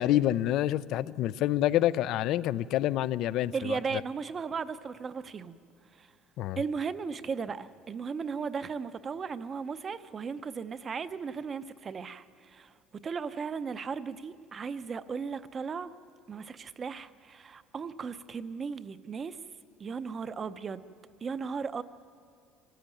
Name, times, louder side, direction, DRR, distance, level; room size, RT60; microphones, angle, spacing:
voice 1, 0.0-3.8 6.4-6.6, left 13 dB, 60° left, 19 dB, 0.4 m, -27 dB
voice 2, 3.5-5.6 6.0-6.1 6.6-12.7 13.0-15.9 16.3-19.4 19.8-20.9 21.2-21.8, right 5 dB, 25° right, 13 dB, 0.6 m, -36 dB
25.0 x 15.0 x 9.1 m, 2.4 s
cardioid pair, 150°, 0 cm